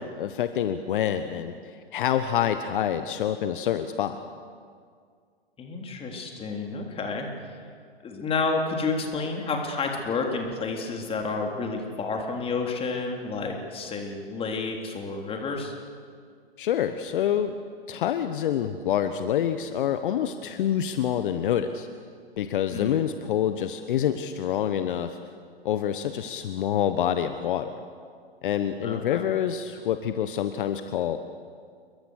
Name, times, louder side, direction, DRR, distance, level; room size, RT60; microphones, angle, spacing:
voice 1, 0.0-4.2 16.6-17.5 17.9-21.9 22.4-25.2 25.6-27.8 28.4-31.2, left 10 dB, 55° left, 9 dB, 1.2 m, -27 dB
voice 2, 5.6-7.6 8.0-15.8 22.7-23.0 28.8-29.3, left 4 dB, 20° left, 2 dB, 3.6 m, -30 dB
28.5 x 23.0 x 6.5 m, 2.1 s
figure-of-eight pair, 115°, 31 cm